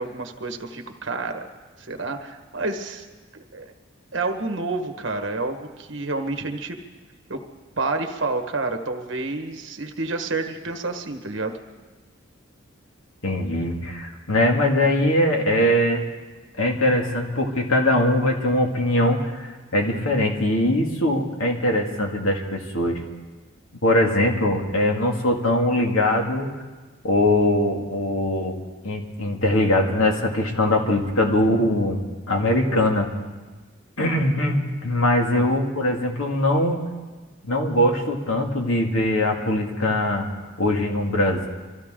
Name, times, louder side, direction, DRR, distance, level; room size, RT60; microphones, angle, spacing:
voice 1, 0.0-1.4 1.8-3.1 3.3-3.7 4.1-6.8 7.3-7.4 7.8-11.6 35.3-35.6, right 3 dB, 60° right, 5 dB, 1.4 m, -29 dB
voice 2, 13.2-16.0 16.6-23.0 23.8-26.5 27.0-28.6 28.8-32.0 32.3-33.1 34.0-36.8 37.4-40.3 40.6-41.5, left 1 dB, 80° left, 1 dB, 2.2 m, -21 dB
24.5 x 15.0 x 3.8 m, 1.3 s
head